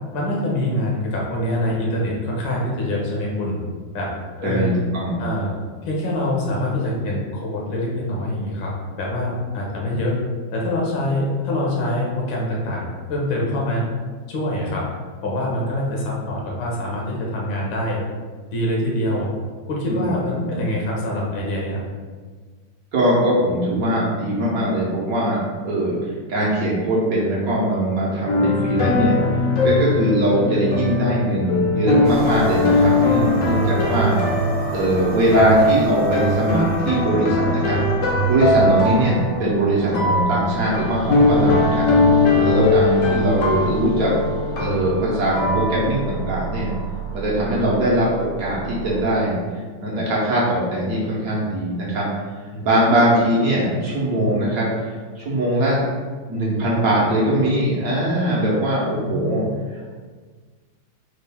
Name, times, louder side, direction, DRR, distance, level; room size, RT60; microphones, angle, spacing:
voice 1, 0.1-3.6 3.9-4.1 4.4-4.7 5.2-5.5 5.9-8.7 9.0-10.2 10.5-13.8 14.3-14.8 15.2-18.0 18.5-19.3 19.7-21.8 42.2-42.4 52.5-52.7 59.0-59.4, left 1 dB, 80° left, -3 dB, 1.7 m, -24 dB
voice 2, 4.4-5.3 19.9-20.6 22.9-29.2 29.6-34.2 34.7-37.8 38.3-41.9 42.4-44.1 44.6-46.7 47.1-49.3 49.8-52.1 52.6-54.7 55.2-55.8 56.3-59.4, right 1 dB, 60° right, -5 dB, 1.1 m, -21 dB
sound 1, 28.3-46.8, left 2 dB, 65° left, 0.8 m, -20 dB
sound 2, 32.0-49.0, right 4 dB, 75° right, 1.4 m, -34 dB
4.4 x 2.5 x 3.4 m, 1.5 s
omnidirectional pair, 2.1 m